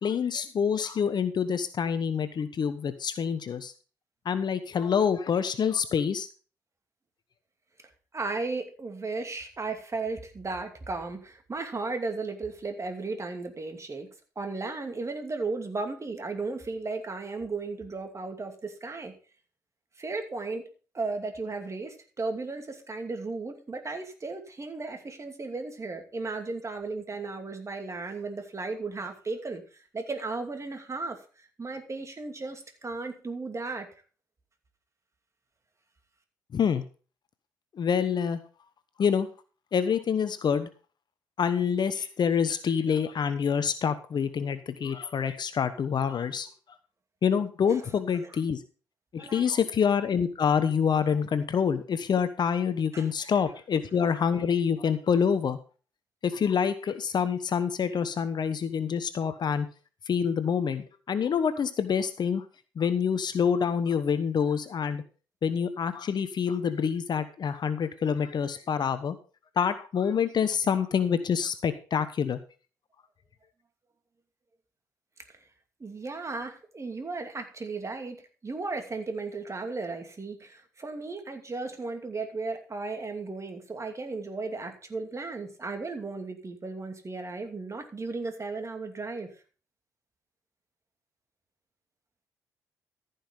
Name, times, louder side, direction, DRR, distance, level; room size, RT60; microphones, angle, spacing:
voice 1, 0.0-3.7 4.2-6.3 36.5-36.8 37.7-38.4 39.0-39.3 39.7-40.7 41.4-46.5 47.2-48.6 49.1-55.6 56.2-59.7 60.1-62.4 62.8-65.0 65.4-69.2 69.6-72.4, left 7 dB, 45° left, 12 dB, 1.1 m, -26 dB
voice 2, 8.1-14.1 14.4-19.1 20.0-20.6 20.9-33.9 47.6-47.8 48.2-48.3 49.2-49.5 52.9-53.1 75.8-78.2 78.4-89.3, right 3 dB, 30° right, 5 dB, 2.7 m, -35 dB
14.5 x 5.8 x 5.2 m, 0.37 s
hypercardioid pair, 45°, 10 cm